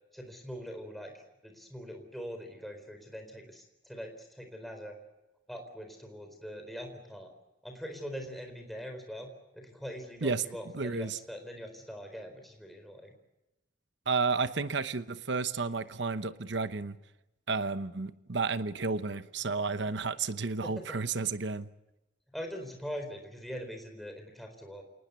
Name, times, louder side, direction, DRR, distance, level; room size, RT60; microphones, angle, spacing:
voice 1, 0.1-1.1 1.4-5.0 5.5-7.3 7.6-9.3 9.5-13.1 20.6-21.0 22.3-24.8, equal, ahead, 3 dB, 4.2 m, -42 dB
voice 2, 10.7-11.2 14.1-17.0 17.5-21.7, right 4 dB, 65° right, 12 dB, 0.9 m, -32 dB
28.0 x 19.5 x 8.2 m, 0.97 s
head